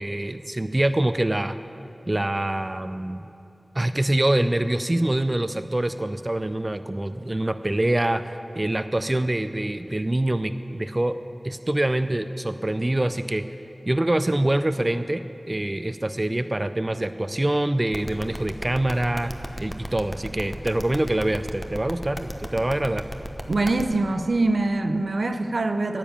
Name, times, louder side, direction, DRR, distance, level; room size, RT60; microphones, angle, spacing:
voice 1, 0.0-1.6 2.1-3.3 3.8-11.2 11.4-13.4 13.9-19.3 19.6-23.0, right 1 dB, 35° right, 11 dB, 0.4 m, -25 dB
sound 1, 17.9-23.8, equal, 10° left, 0.9 m, -33 dB
voice 2, 23.5-26.0, right 2 dB, 85° right, 8 dB, 0.5 m, -23 dB
10.0 x 7.0 x 8.6 m, 2.8 s
wide cardioid pair, 50°, 0 cm